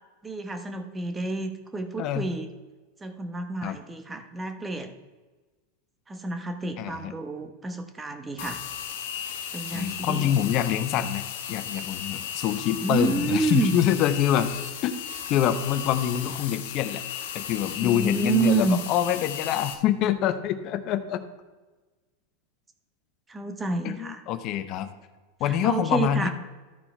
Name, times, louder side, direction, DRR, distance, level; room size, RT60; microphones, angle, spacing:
voice 1, 0.2-2.5 3.0-4.9 6.1-8.6 9.5-10.4 12.8-13.7 17.8-18.8 23.3-24.2 25.5-26.3, right 3 dB, 15° right, 7 dB, 0.9 m, -29 dB
voice 2, 6.8-7.1 9.7-11.2 11.5-14.5 14.8-14.9 15.3-17.0 17.3-21.2 23.8-24.9 25.4-26.3, left 10 dB, 45° left, 11 dB, 0.8 m, -25 dB
sound 1, 8.4-19.7, left 9 dB, 75° left, 1.1 m, -35 dB
13.5 x 4.5 x 4.3 m, 1.3 s
supercardioid pair, 135°, 0 cm